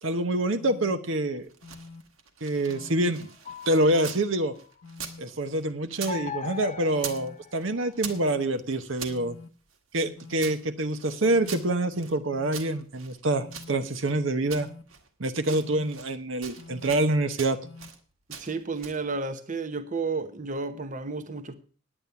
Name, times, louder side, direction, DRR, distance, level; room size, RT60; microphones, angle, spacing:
voice 1, 0.0-1.5 2.4-3.3 3.7-4.5 5.2-9.3 9.9-14.7 15.2-17.6, right 1 dB, 60° right, 1.0 m, -26 dB
sound 1, 0.6-1.0 1.6-2.0 2.7-3.1 3.7-4.2 4.8-5.2 5.9-6.3 7.0-7.4 8.0-8.4 9.1-9.5 10.2-10.6 11.2-11.6 12.3-12.7 13.4-13.8 14.4-14.8 15.5-15.9 16.6-17.0 17.6-17.9, left 3 dB, 75° left, 1.1 m, -46 dB
sound 2, 1.4-4.3 4.5-6.2 6.4-7.3 7.5-9.2 9.7-12.2 12.5-14.2 14.5-15.1 15.4-16.2 16.4-17.1 17.4-18.0 18.3-19.0, right 7 dB, 80° right, 1.7 m, -42 dB
sound 3, 2.5-4.8 6.1-8.3, left 5 dB, 35° left, 0.7 m, -41 dB
voice 2, 18.3-21.5, right 4 dB, 40° right, 0.9 m, -32 dB
10.0 x 9.0 x 6.9 m
head